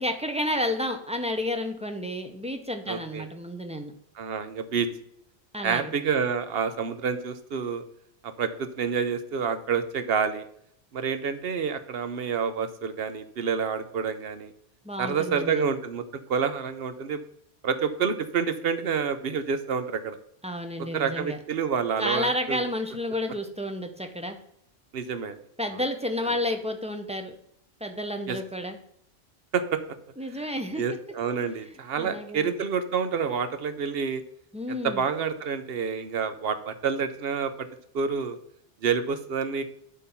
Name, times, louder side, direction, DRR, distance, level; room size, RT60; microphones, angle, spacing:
voice 1, 0.0-3.9 5.5-5.9 14.8-15.6 20.4-21.4 22.0-24.4 25.6-27.3 27.8-28.8 30.2-30.8 32.0-32.5 34.5-35.0, left 1 dB, 5° right, 5 dB, 0.6 m, -31 dB
voice 2, 2.9-3.3 4.2-4.9 5.6-7.8 8.2-10.5 10.9-14.5 15.0-17.2 17.6-20.2 20.9-22.6 24.9-25.4 28.3-28.4 29.5-29.8 30.4-30.5 30.8-34.2 34.7-37.7 37.9-38.4 38.8-39.6, right 6 dB, 60° right, 10 dB, 0.9 m, -28 dB
8.1 x 3.8 x 5.6 m, 0.71 s
omnidirectional pair, 1.2 m